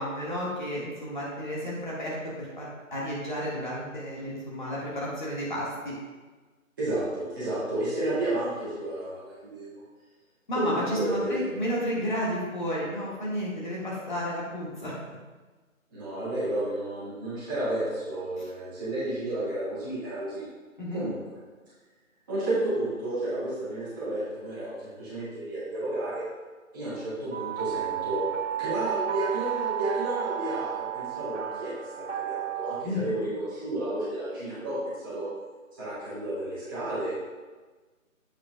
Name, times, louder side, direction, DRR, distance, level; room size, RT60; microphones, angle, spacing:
voice 1, 0.0-5.9 10.5-14.9 20.8-21.0 32.8-33.0, equal, 35° left, -6 dB, 1.7 m, -32 dB
voice 2, 6.8-9.8 10.5-11.5 15.9-20.4 20.9-21.1 22.3-26.2 26.7-28.2 28.6-31.7 32.0-35.3 35.8-37.1, right 1 dB, 15° right, -12 dB, 2.2 m, -31 dB
sound 1, 27.3-32.8, right 12 dB, 60° right, 0.5 m, -32 dB
8.4 x 8.1 x 2.3 m, 1.3 s
figure-of-eight pair, 155°, 41 cm